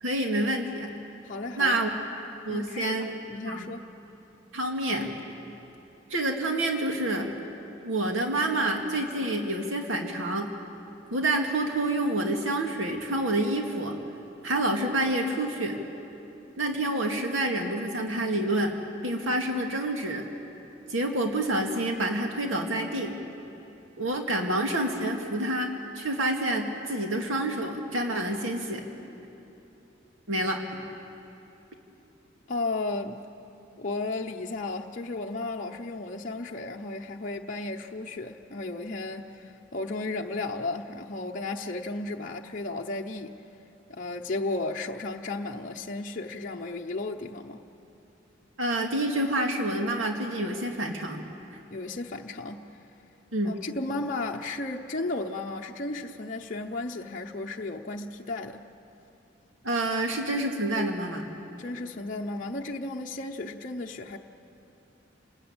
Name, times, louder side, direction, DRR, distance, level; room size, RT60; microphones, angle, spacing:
voice 1, 0.0-0.9 1.6-1.9 2.4-3.1 3.4-3.8 4.5-5.1 6.1-7.3 7.8-10.5 11.1-14.0 14.4-15.8 16.6-18.7 19.0-20.3 20.9-23.2 24.0-28.8 30.3-30.6 48.6-51.2 53.3-53.6 59.6-61.3, right 1 dB, 90° right, 2 dB, 2.2 m, -28 dB
voice 2, 1.2-1.8 2.5-3.9 32.5-33.2 33.8-43.3 43.9-47.6 51.7-52.6 53.4-58.6 61.6-64.2, left 2 dB, 40° left, -1 dB, 0.8 m, -34 dB
29.0 x 20.0 x 8.8 m, 2.9 s
head